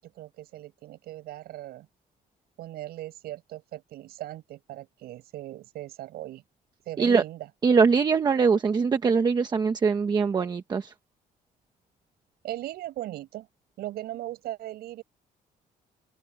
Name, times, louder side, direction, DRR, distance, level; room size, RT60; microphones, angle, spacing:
voice 1, 0.0-1.9 2.6-6.4 6.9-7.5 12.4-13.5 13.8-15.0, right 15 dB, 85° right, 8.0 m, -38 dB
voice 2, 7.6-10.9, right 5 dB, 25° right, 1.1 m, -22 dB
open air
cardioid pair, 170°, 16 cm